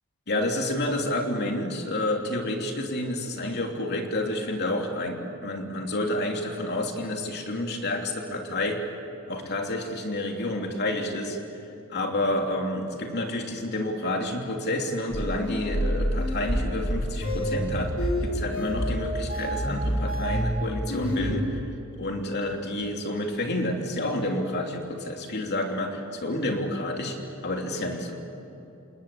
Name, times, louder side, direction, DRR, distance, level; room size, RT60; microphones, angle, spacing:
voice 1, 0.3-8.8 9.3-11.6 11.9-21.6 22.0-27.2 27.4-28.2, left 1 dB, 55° left, 2 dB, 3.0 m, -29 dB
sound 1, 15.1-21.3, equal, 70° left, 6.6 m, -28 dB
28.5 x 19.5 x 8.7 m, 2.8 s
head